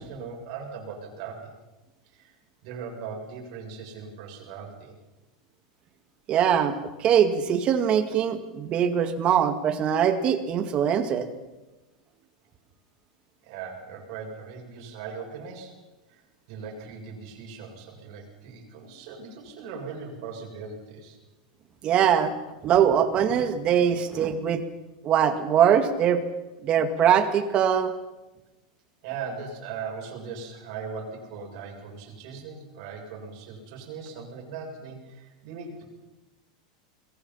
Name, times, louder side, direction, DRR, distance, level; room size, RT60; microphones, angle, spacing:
voice 1, 0.0-1.5 2.0-2.3 2.6-5.0 13.4-15.7 16.1-21.2 29.0-35.8, right 5 dB, 50° right, 0 dB, 7.8 m, -39 dB
voice 2, 6.3-11.3 21.8-22.3 22.6-24.6 25.0-26.2 26.6-27.9, right 8 dB, 25° right, 9 dB, 2.1 m, -22 dB
30.0 x 22.5 x 5.8 m, 1.1 s
supercardioid pair, 165°, 4 cm